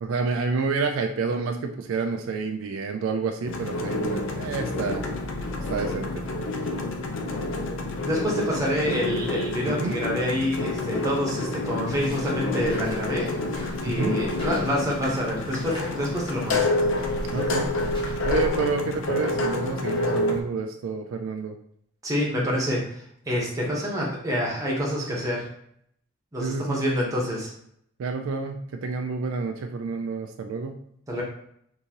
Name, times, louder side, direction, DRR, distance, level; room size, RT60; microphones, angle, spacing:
voice 1, 0.0-5.0 5.7-6.1 9.7-9.9 13.9-14.2 17.3-17.7 18.2-21.6 26.4-26.8 28.0-30.8, right 4 dB, 70° right, 5 dB, 0.3 m, -29 dB
sound 1, 3.4-20.4, left 2 dB, 60° left, 0.5 m, -28 dB
voice 2, 7.8-13.3 13.8-16.7 22.0-25.5 26.3-27.5 31.1-31.2, equal, 15° right, -4 dB, 0.8 m, -27 dB
sound 2, 11.8-18.6, equal, 25° left, 0.9 m, -39 dB
3.8 x 2.7 x 2.8 m, 0.70 s
head